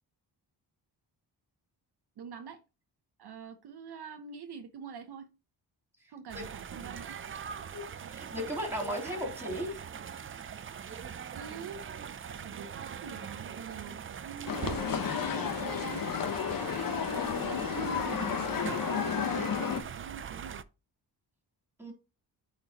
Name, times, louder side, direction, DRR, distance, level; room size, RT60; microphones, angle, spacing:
voice 1, 2.2-2.6 3.2-5.3 6.1-7.2 11.3-11.8 12.4-16.2 17.1-18.6 18.9-20.6, right 7 dB, 65° right, 6 dB, 0.8 m, -45 dB
sound 1, 6.3-20.6, right 7 dB, 30° right, 0.4 m, -42 dB
voice 2, 7.5-9.8 21.8-21.9, equal, 5° right, 0 dB, 3.2 m, -36 dB
sound 2, 14.5-19.8, left 7 dB, 50° left, 0.9 m, -32 dB
9.0 x 4.2 x 2.9 m, 0.30 s
wide cardioid pair, 125°, 43 cm